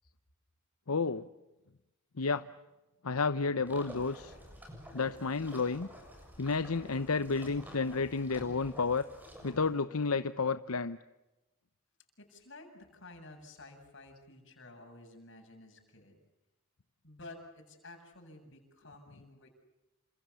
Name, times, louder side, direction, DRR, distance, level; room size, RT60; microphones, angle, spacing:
voice 1, 0.9-1.3 2.2-2.4 3.0-4.3 4.9-5.9 6.4-9.1 9.4-11.0, left 4 dB, 85° left, 12 dB, 0.9 m, -31 dB
sound 1, 3.7-9.7, equal, 10° right, 7.3 m, -50 dB
voice 2, 12.2-16.2 17.0-19.5, left 2 dB, 55° left, 3 dB, 7.9 m, -52 dB
29.5 x 27.0 x 7.1 m, 1.0 s
head